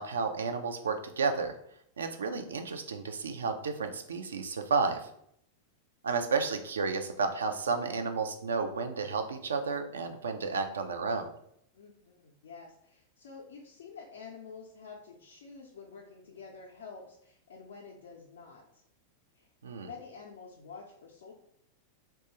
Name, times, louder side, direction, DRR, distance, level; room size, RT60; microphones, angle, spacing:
voice 1, 0.0-1.6 2.0-5.1 6.0-11.3 19.6-19.9, right 4 dB, 70° right, 7 dB, 0.4 m, -32 dB
voice 2, 11.7-18.8 19.3-19.5 19.8-21.3, left 5 dB, 60° left, -1 dB, 0.5 m, -49 dB
2.8 x 2.3 x 4.1 m, 0.72 s
figure-of-eight pair, 90°, 0 cm